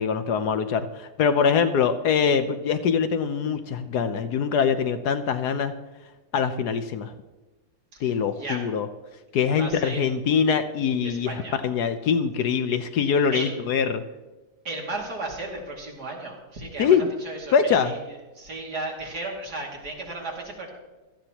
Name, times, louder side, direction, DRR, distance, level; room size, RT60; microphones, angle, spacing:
voice 1, 0.0-5.7 6.3-7.1 8.0-8.9 9.3-14.0 16.8-17.1 17.5-17.9, left 6 dB, 75° left, 9 dB, 1.3 m, -23 dB
voice 2, 7.9-8.6 9.6-10.1 11.0-11.6 13.3-13.6 14.6-18.0 18.3-20.7, right 2 dB, 70° right, -1 dB, 3.1 m, -35 dB
16.5 x 14.5 x 3.0 m, 1.2 s
omnidirectional pair, 1.8 m